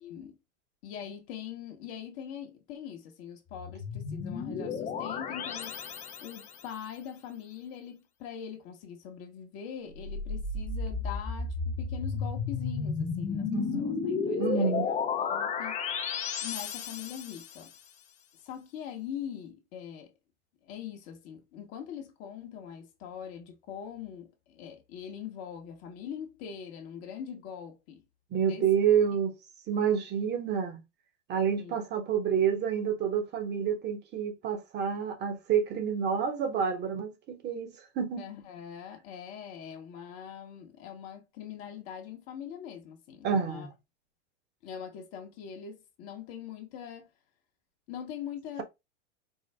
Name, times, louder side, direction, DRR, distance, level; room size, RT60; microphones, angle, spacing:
voice 1, 0.0-0.4 0.8-5.8 6.2-13.5 13.8-15.8 16.4-17.7 18.4-20.1 20.6-28.0 28.4-28.6 31.6-31.8 38.2-43.7 44.6-47.1 47.9-48.6, left 8 dB, 45° left, 0.9 m, -42 dB
sound 1, 3.5-6.6 9.9-17.6, left 5 dB, 20° left, 0.5 m, -33 dB
voice 2, 14.4-14.9 28.3-29.3 29.7-30.8 31.3-38.3 43.2-43.7, right 7 dB, 30° right, 1.0 m, -28 dB
4.5 x 2.0 x 3.2 m
hypercardioid pair, 110°, 36 cm